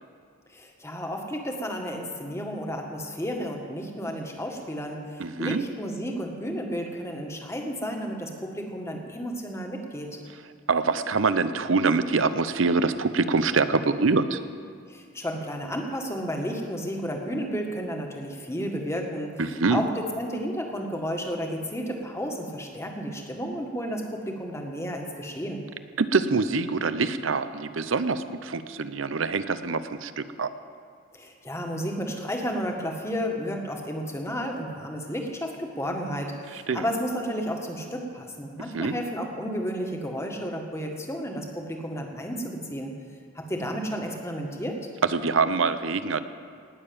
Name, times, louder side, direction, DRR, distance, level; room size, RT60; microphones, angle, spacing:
voice 1, 0.5-10.1 14.9-19.3 19.7-25.6 31.1-43.0 43.3-44.8, equal, 15° left, 2 dB, 1.7 m, -32 dB
voice 2, 5.2-5.6 10.7-14.4 19.4-19.8 26.0-30.5 36.7-36.9 38.7-39.0 45.0-46.2, right 4 dB, 85° right, 12 dB, 0.7 m, -25 dB
19.0 x 6.8 x 8.8 m, 2.3 s
head